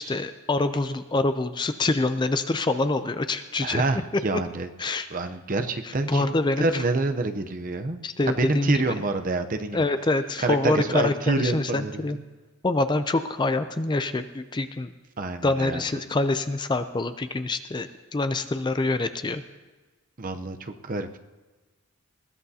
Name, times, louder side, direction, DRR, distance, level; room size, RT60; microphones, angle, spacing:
voice 1, 0.0-3.8 4.8-5.1 5.8-6.8 8.0-8.7 9.7-12.2 12.6-14.9 15.4-19.4, left 2 dB, 20° left, 10 dB, 0.4 m, -26 dB
voice 2, 3.6-4.7 5.1-8.0 8.3-9.9 10.4-12.2 15.2-15.8 20.2-21.2, right 2 dB, 40° right, 7 dB, 0.7 m, -27 dB
20.5 x 15.5 x 2.8 m, 1.3 s
head